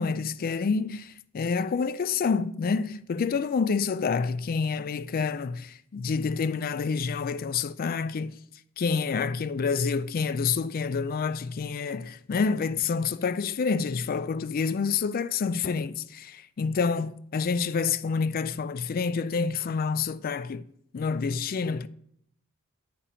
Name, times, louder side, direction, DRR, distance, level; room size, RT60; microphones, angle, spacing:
voice 1, 0.0-8.4 8.8-20.6 20.9-21.9, left 5 dB, 40° left, 0.3 m, -28 dB
8.6 x 4.9 x 5.6 m
head